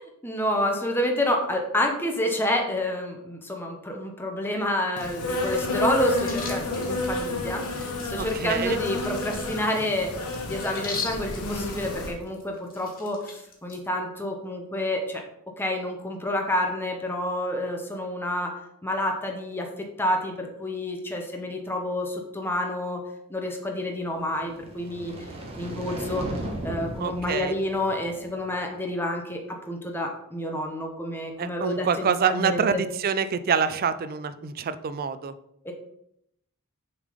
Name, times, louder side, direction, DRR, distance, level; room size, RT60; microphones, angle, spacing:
voice 1, 0.0-10.1 10.4-15.2 15.6-19.7 20.0-23.0 23.3-25.1 25.5-26.3 26.6-32.8 35.6-35.7, left 1 dB, 10° left, 2 dB, 0.8 m, -29 dB
Insect, 5.0-12.1, left 2 dB, 90° left, 1.3 m, -30 dB
sound 1, 5.0-13.8, left 4 dB, 45° left, 1.7 m, -41 dB
voice 2, 8.2-8.8 27.0-27.5 31.4-35.3, right 6 dB, 40° right, 12 dB, 0.4 m, -26 dB
sound 2, 24.3-28.6, right 1 dB, 25° right, 1.2 m, -36 dB
6.6 x 3.7 x 5.0 m, 0.76 s
head